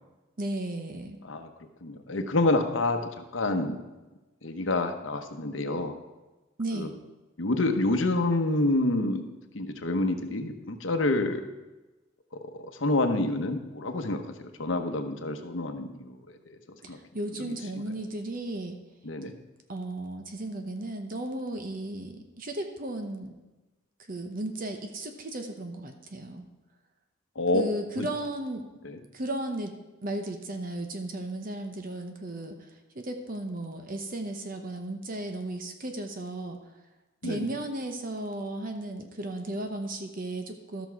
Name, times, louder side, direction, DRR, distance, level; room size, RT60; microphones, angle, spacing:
voice 1, 0.4-1.2 6.6-6.9 16.8-18.8 19.7-23.3 24.1-26.5 27.5-28.7 29.1-29.7 30.0-32.5 32.9-36.6 37.2-40.9, right 1 dB, 45° right, 5 dB, 0.9 m, -35 dB
voice 2, 1.8-3.8 4.4-5.9 6.7-6.9 7.4-9.3 9.5-11.5 12.3-16.2 16.5-16.6 16.9-17.0 17.4-17.5 19.0-19.3 27.4-27.6 28.0-28.1 28.8-29.0 37.2-37.4, left 2 dB, 70° left, 6 dB, 1.0 m, -28 dB
13.5 x 6.2 x 4.7 m, 1.1 s
head